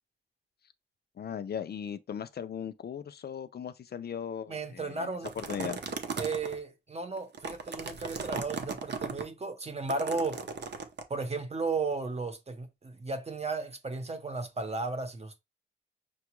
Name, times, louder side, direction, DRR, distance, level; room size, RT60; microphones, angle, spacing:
voice 1, 1.2-5.1 5.4-5.8, left 8 dB, 55° left, 0.4 m, -38 dB
voice 2, 4.5-5.3 6.2-10.4 11.1-15.4, right 3 dB, 35° right, 0.8 m, -34 dB
sound 1, 5.2-6.6 7.2-9.2 9.9-11.0, right 5 dB, 65° right, 0.7 m, -37 dB
5.8 x 2.3 x 3.0 m
wide cardioid pair, 135°, 19 cm